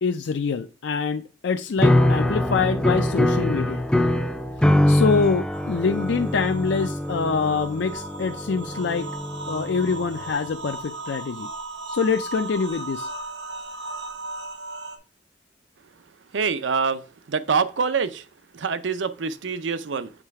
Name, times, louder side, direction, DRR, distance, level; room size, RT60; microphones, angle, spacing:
voice 1, 0.0-3.9 4.9-9.1 9.5-11.5 11.9-13.1, left 5 dB, 75° left, 0.4 m, -25 dB
sound 1, 1.8-10.1, left 1 dB, 5° left, 0.4 m, -23 dB
sound 2, 5.5-15.0, right 2 dB, 70° right, 0.9 m, -37 dB
voice 2, 16.3-18.2 18.5-20.1, right 5 dB, 85° right, 0.6 m, -25 dB
7.3 x 3.2 x 4.7 m
head